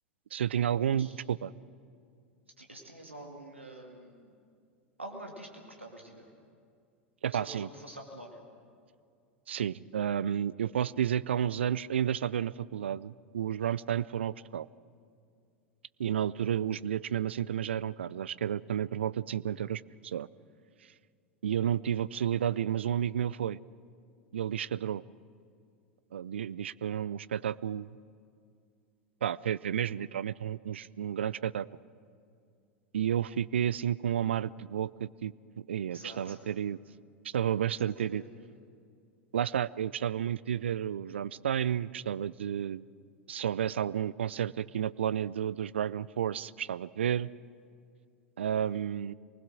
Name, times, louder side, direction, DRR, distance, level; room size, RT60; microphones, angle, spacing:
voice 1, 0.3-1.5 7.2-7.7 9.5-14.7 16.0-20.3 21.4-23.6 24.3-25.0 26.1-27.9 29.2-31.7 32.9-36.8 37.3-38.2 39.3-42.8 43.3-47.3 48.4-49.1, right 9 dB, 70° right, 19 dB, 0.4 m, -31 dB
voice 2, 2.6-4.3 5.0-6.3 7.3-8.4 35.9-36.5 37.8-38.4, right 1 dB, 90° right, 1 dB, 2.1 m, -46 dB
24.5 x 20.0 x 6.2 m, 2.3 s
figure-of-eight pair, 85°, 6 cm